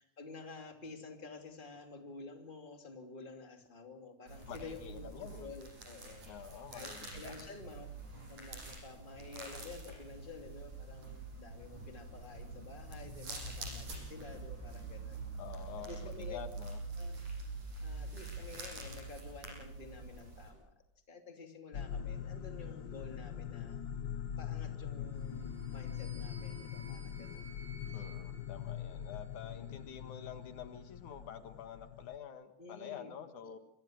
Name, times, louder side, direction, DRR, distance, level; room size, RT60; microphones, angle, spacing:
voice 1, 0.0-6.3 6.7-7.9 8.3-15.2 15.8-16.4 17.0-17.2 17.8-20.7 21.1-23.8 24.4-27.5 27.9-28.0 29.5-30.0 32.6-33.1 33.4-33.5, left 4 dB, 15° left, 3 dB, 2.7 m, -50 dB
sound 1, 4.3-20.5, right 3 dB, 85° right, 8.0 m, -45 dB
voice 2, 4.5-5.5 6.3-7.5 15.4-16.8 27.9-33.6, left 9 dB, 90° left, 7 dB, 3.1 m, -48 dB
sound 2, 21.7-32.2, left 8 dB, 65° left, 1.1 m, -42 dB
sound 3, 25.2-29.5, right 2 dB, 55° right, 5.0 m, -57 dB
27.5 x 22.0 x 6.5 m, 0.76 s
omnidirectional pair, 3.3 m